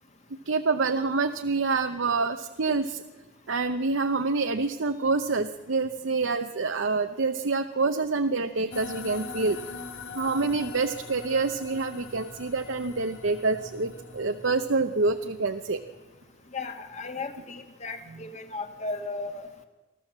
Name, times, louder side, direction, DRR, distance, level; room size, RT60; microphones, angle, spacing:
voice 1, 0.5-3.0 3.5-9.6 10.1-15.8, right 3 dB, 70° right, 7 dB, 0.8 m, -27 dB
sound 1, 8.7-16.3, left 4 dB, 65° left, 1.8 m, -43 dB
voice 2, 16.5-19.5, left 3 dB, 35° left, 6 dB, 1.9 m, -35 dB
24.5 x 15.0 x 7.4 m, 1.2 s
head